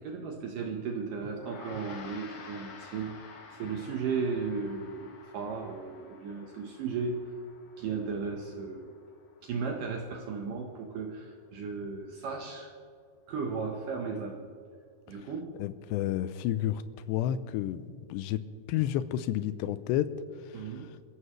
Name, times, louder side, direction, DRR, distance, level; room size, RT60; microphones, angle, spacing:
voice 1, 0.0-7.2 7.8-8.9 9.4-12.7 13.3-14.5 15.1-15.6 20.5-20.9, right 5 dB, 65° right, 1 dB, 2.2 m, -35 dB
Gong, 1.3-11.0, left 5 dB, 55° left, 2.6 m, -51 dB
voice 2, 15.6-16.8 17.1-20.1 20.4-20.7, left 12 dB, 80° left, 13 dB, 2.8 m, -31 dB
27.0 x 14.5 x 3.2 m, 2.2 s
omnidirectional pair, 5.1 m